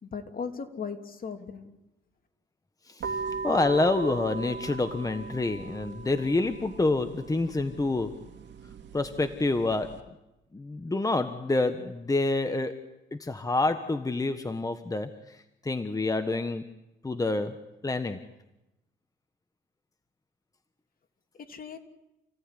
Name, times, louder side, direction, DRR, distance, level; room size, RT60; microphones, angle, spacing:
voice 1, 0.0-1.7 21.3-21.8, left 5 dB, 45° left, 5 dB, 3.2 m, -37 dB
voice 2, 2.9-8.2 8.9-10.0 10.5-12.8 13.1-16.6 17.0-17.6 17.8-18.2, left 2 dB, 15° left, 9 dB, 1.4 m, -28 dB
sound 1, 3.0-10.0, right 4 dB, 65° right, 3.3 m, -39 dB
29.5 x 17.0 x 9.9 m, 0.95 s
cardioid pair, 90°, 20 cm